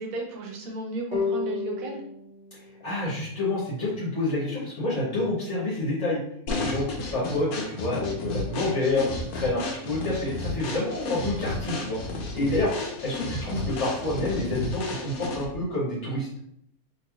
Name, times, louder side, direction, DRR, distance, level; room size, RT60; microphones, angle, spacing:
voice 1, 0.0-2.0, right 2 dB, 70° right, 0 dB, 1.2 m, -34 dB
sound 1, 1.1-4.4, left 5 dB, 30° left, 1.1 m, -34 dB
voice 2, 2.8-6.2 6.5-12.0 12.3-12.7 13.0-16.3, left 2 dB, 55° left, -7 dB, 1.3 m, -28 dB
sound 2, 6.5-15.6, left 2 dB, 85° left, 1.2 m, -33 dB
4.3 x 3.0 x 2.3 m, 0.71 s
omnidirectional pair, 1.5 m